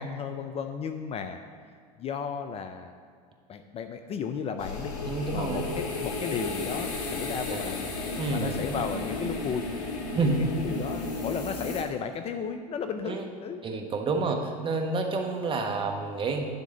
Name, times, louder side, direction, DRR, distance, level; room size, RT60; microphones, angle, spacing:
voice 1, 0.0-1.4 2.0-2.9 3.5-4.9 5.3-7.9 8.3-9.7 10.2-13.6, left 6 dB, 30° left, 8 dB, 0.5 m, -34 dB
sound 1, 4.6-11.8, left 3 dB, 65° left, 1.8 m, -33 dB
voice 2, 5.1-5.7 7.5-7.6 8.2-8.7 10.1-10.5 13.0-13.3 13.6-16.5, right 3 dB, 25° right, 3 dB, 1.2 m, -29 dB
10.5 x 3.7 x 6.8 m, 2.2 s
hypercardioid pair, 95°, 21 cm